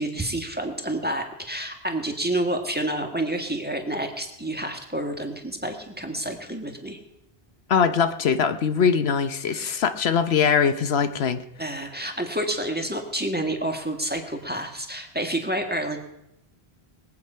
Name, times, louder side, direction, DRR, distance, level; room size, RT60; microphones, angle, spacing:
voice 1, 0.0-7.0 9.5-9.8 11.6-16.0, right 1 dB, 10° right, 3 dB, 1.6 m, -29 dB
voice 2, 7.7-11.4, left 6 dB, 80° left, 10 dB, 1.1 m, -22 dB
21.0 x 8.4 x 5.6 m, 0.81 s
omnidirectional pair, 1.0 m